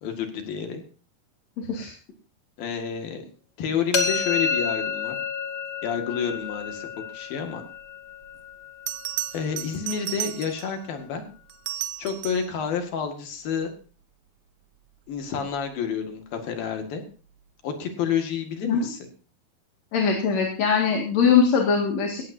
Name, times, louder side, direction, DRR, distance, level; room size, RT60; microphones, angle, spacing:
voice 1, 0.0-0.8 2.6-3.2 3.6-5.2 5.8-6.9 7.1-7.6 9.3-11.2 12.0-13.7 15.1-17.0 17.6-19.0, left 7 dB, 75° left, 5 dB, 3.7 m, -29 dB
voice 2, 1.6-1.9 18.6-18.9 19.9-22.2, left 6 dB, 50° left, 0 dB, 3.0 m, -21 dB
sound 1, 3.9-9.8, left 5 dB, 35° left, 1.9 m, -30 dB
Bell, 8.2-8.3 8.9-10.8 11.5-12.6 15.3-15.5, right 15 dB, 80° right, 2.6 m, -33 dB
18.0 x 14.5 x 2.7 m, 0.40 s
omnidirectional pair, 4.2 m